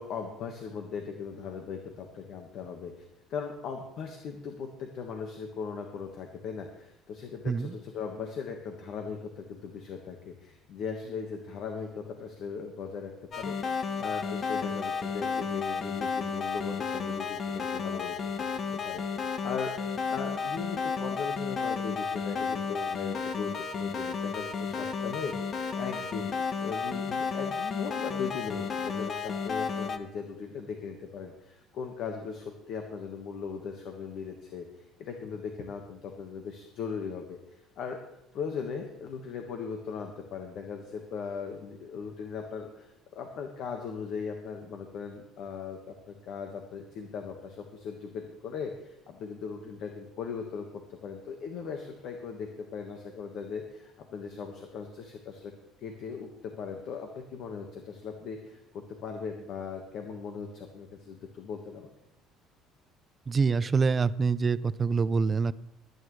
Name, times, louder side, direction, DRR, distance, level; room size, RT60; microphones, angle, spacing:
voice 1, 0.0-2.9 3.3-18.4 18.7-26.3 26.6-34.7 35.0-37.4 37.8-38.0 38.3-55.5 55.8-61.9, left 6 dB, 60° left, 3 dB, 1.5 m, -38 dB
sound 1, 13.3-30.0, left 5 dB, 40° left, 1.1 m, -32 dB
voice 2, 63.3-65.5, right 5 dB, 25° right, 16 dB, 0.4 m, -25 dB
22.5 x 9.5 x 3.2 m, 0.82 s
cardioid pair, 120°, 0 cm